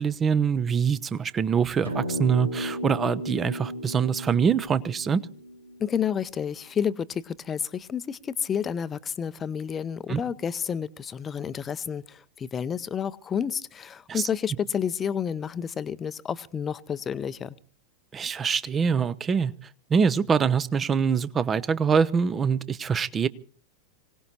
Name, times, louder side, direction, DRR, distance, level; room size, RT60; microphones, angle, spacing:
voice 1, 0.0-5.2 10.1-10.2 14.1-14.2 18.1-19.5 19.9-23.3, right 6 dB, 20° right, 0.7 m, -24 dB
sound 1, 1.8-6.4, equal, 75° right, 2.0 m, -35 dB
voice 2, 5.8-17.6, left 8 dB, 20° left, 0.6 m, -30 dB
26.0 x 18.0 x 2.9 m
figure-of-eight pair, 90°, 0 cm